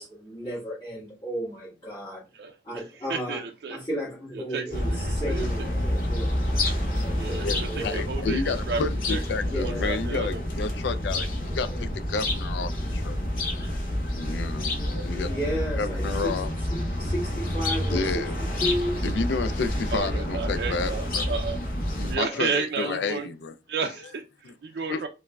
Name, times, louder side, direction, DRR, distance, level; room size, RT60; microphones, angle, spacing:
voice 1, 0.0-2.2 2.6-3.4 3.7-6.3 6.9-8.0 9.5-9.9 11.7-11.8 15.2-16.3 16.7-18.2 18.6-19.0 22.3-22.4 22.8-23.0, equal, 30° left, 1.6 m, -33 dB
voice 2, 2.3-3.8 4.3-5.5 7.2-9.2 9.5-10.4 19.9-21.6 22.1-23.3 23.7-25.1, right 5 dB, 65° right, 0.3 m, -32 dB
sound 1, 4.7-22.2, left 1 dB, 50° left, 0.7 m, -28 dB
voice 3, 7.4-13.5 14.2-15.3 15.8-16.5 17.9-18.4 19.0-21.3 21.9-22.5 22.8-23.5 24.9-25.0, left 4 dB, 75° left, 0.4 m, -31 dB
4.6 x 2.1 x 2.2 m
head